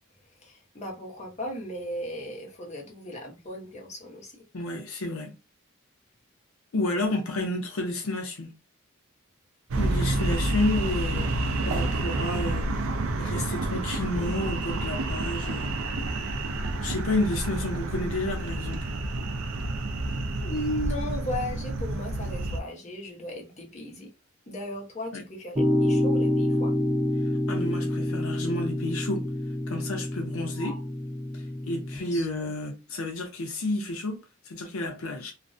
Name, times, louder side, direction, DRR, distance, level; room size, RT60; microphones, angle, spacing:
voice 1, 0.4-4.4 20.4-24.1 24.5-26.7 30.6-30.8 32.0-32.5, equal, 35° left, 0.8 m, -36 dB
voice 2, 4.5-5.3 6.7-8.5 9.8-11.3 11.6-12.7 13.2-15.7 16.8-18.9 25.1-25.2 27.5-29.3 29.7-30.8 31.3-34.2 34.4-35.3, left 2 dB, 75° left, 0.5 m, -30 dB
sound 1, 9.7-22.6, right 2 dB, 75° right, 0.4 m, -29 dB
sound 2, 25.6-32.0, left 1 dB, 20° right, 0.6 m, -27 dB
2.5 x 2.1 x 2.5 m
head